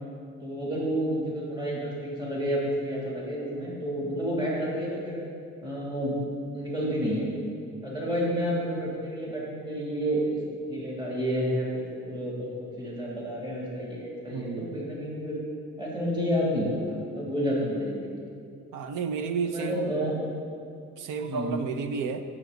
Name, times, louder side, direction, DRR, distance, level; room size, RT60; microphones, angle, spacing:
voice 1, 0.4-5.2 5.6-6.2 6.5-7.3 7.8-12.5 12.8-15.4 15.8-16.7 17.1-18.0 19.4-20.3 21.3-21.6, equal, 15° right, -5 dB, 2.9 m, -30 dB
voice 2, 14.3-14.8 18.7-19.9 21.0-22.2, right 5 dB, 85° right, 8 dB, 0.8 m, -31 dB
16.0 x 7.4 x 4.0 m, 2.3 s
cardioid pair, 90°, 30 cm